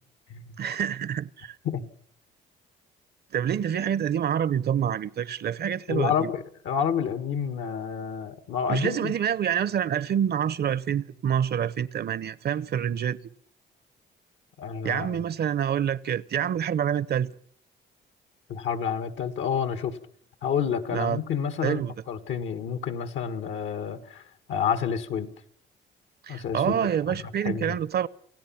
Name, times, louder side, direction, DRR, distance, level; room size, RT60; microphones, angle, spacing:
voice 1, 0.6-1.5 3.3-6.3 8.7-13.2 14.8-17.3 20.9-21.2 21.6-21.9 26.2-28.1, right 9 dB, 55° right, 0.8 m, -27 dB
voice 2, 5.9-9.1 14.6-15.2 18.5-20.0 20.4-21.8 22.1-24.2 24.5-25.3 26.3-26.8 27.4-27.7, left 7 dB, 80° left, 1.8 m, -29 dB
28.5 x 16.0 x 5.9 m
cardioid pair, 90°, 20 cm